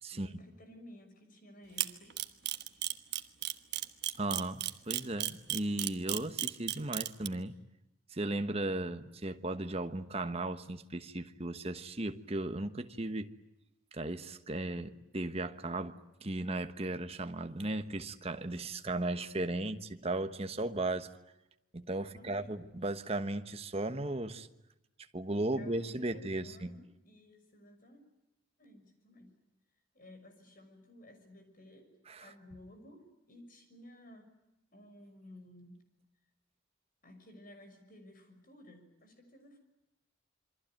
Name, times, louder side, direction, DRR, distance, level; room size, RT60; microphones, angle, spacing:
voice 1, 0.1-2.2 19.4-19.7 22.0-22.7 25.5-28.0 28.6-29.3 29.9-31.9 32.2-34.3 34.7-35.8 37.0-39.6, left 1 dB, 45° left, 6.2 m, -55 dB
Camera, 1.8-7.3, right 14 dB, 55° right, 1.3 m, -33 dB
voice 2, 4.2-7.6 8.1-13.3 13.9-21.1 21.7-24.5 25.1-26.8 32.1-32.3, right 2 dB, 30° right, 1.2 m, -36 dB
27.5 x 24.0 x 8.9 m
head